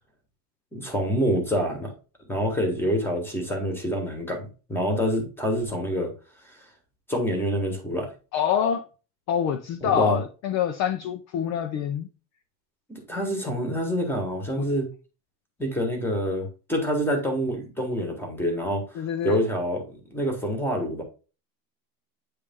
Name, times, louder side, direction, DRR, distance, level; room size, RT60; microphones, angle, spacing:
voice 1, 0.7-1.9 2.3-6.1 6.5-6.6 7.1-8.1 9.8-10.2 12.9-14.9 15.6-21.0, equal, 5° left, 1.1 m, -27 dB
voice 2, 8.3-8.8 9.3-12.1 14.6-14.7 19.0-19.4, left 9 dB, 40° left, 0.4 m, -26 dB
8.6 x 3.3 x 3.5 m
cardioid pair, 175°, 45 cm